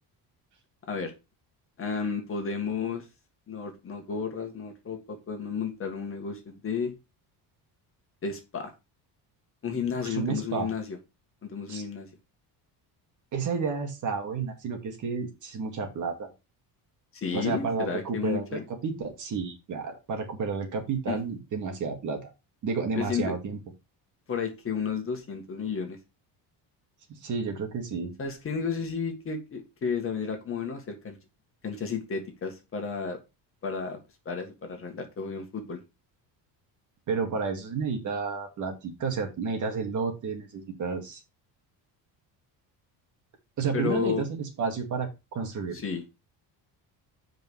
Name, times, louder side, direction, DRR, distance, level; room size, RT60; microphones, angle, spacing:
voice 1, 1.8-3.1 3.5-6.9 8.2-8.7 9.6-11.0 11.4-12.1 17.1-18.6 21.1-21.2 23.0-23.3 24.3-26.0 28.2-31.2 31.6-33.2 33.6-34.0 34.3-35.8 43.7-44.2 45.7-46.0, left 6 dB, 30° left, 4 dB, 2.0 m, -32 dB
voice 2, 10.0-10.7 11.7-11.8 13.3-16.3 17.3-22.3 22.6-23.6 27.1-28.1 37.1-41.2 43.6-45.8, right 5 dB, 45° right, 3 dB, 2.3 m, -31 dB
8.0 x 5.3 x 4.7 m, 0.26 s
cardioid pair, 160°, 42 cm